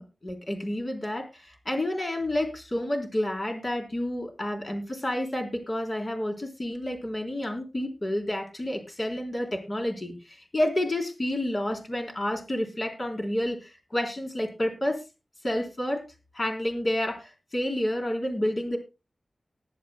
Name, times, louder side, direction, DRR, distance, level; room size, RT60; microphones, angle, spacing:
voice 1, 0.0-15.0 15.4-16.0 16.3-18.8, left 1 dB, 35° left, 2 dB, 3.8 m, -30 dB
19.5 x 11.0 x 2.2 m, 0.28 s
wide cardioid pair, 110°, 0 cm